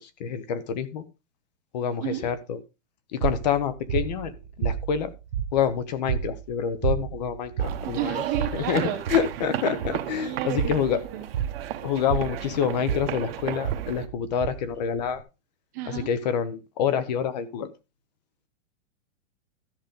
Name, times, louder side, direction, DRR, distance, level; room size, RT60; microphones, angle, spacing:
voice 1, 0.2-1.0 1.7-2.6 3.1-5.1 5.5-8.2 8.5-8.8 9.1-11.0 11.8-15.2 15.9-17.7, left 8 dB, 35° left, 13 dB, 0.9 m, -27 dB
sound 1, 3.2-15.2, right 8 dB, 65° right, 1.4 m, -31 dB
sound 2, 7.6-14.1, right 11 dB, 50° right, 1.1 m, -34 dB
voice 2, 7.8-9.0 10.2-11.3 15.7-16.1, right 11 dB, 15° right, 3 dB, 0.5 m, -31 dB
13.5 x 5.1 x 5.2 m, 0.28 s
hypercardioid pair, 170°, 39 cm